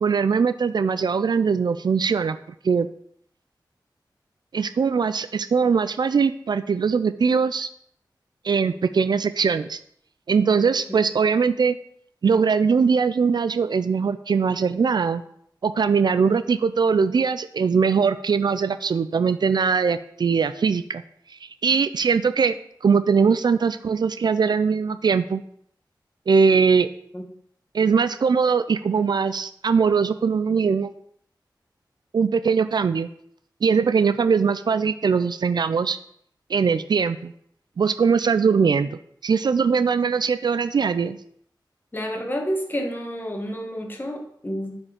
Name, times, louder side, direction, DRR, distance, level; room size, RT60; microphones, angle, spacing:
voice 1, 0.0-2.4 2.6-2.9 4.5-7.7 8.4-9.8 10.3-11.8 12.2-15.2 15.6-21.0 21.4-22.6 22.8-25.4 26.3-26.9 27.7-30.9 32.1-33.1 33.6-36.0 36.5-37.3 37.8-41.2, right 5 dB, 65° right, 12 dB, 0.4 m, -21 dB
voice 2, 41.9-44.8, equal, 25° left, 1 dB, 1.5 m, -29 dB
7.1 x 4.5 x 5.1 m, 0.67 s
wide cardioid pair, 85°, 8 cm